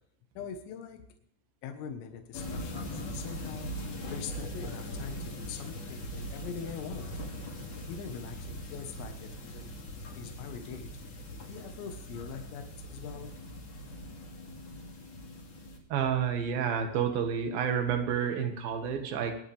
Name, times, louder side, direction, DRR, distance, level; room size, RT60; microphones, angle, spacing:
voice 1, 0.4-1.0 1.6-3.8 4.1-7.3 7.9-9.8 10.2-11.0 11.5-13.3, left 7 dB, 85° left, 6 dB, 4.0 m, -42 dB
sound 1, 2.3-15.8, equal, 40° left, 2.7 m, -41 dB
voice 2, 15.9-19.4, right 7 dB, 60° right, 5 dB, 2.8 m, -29 dB
25.0 x 10.5 x 3.4 m, 0.69 s
omnidirectional pair, 6.0 m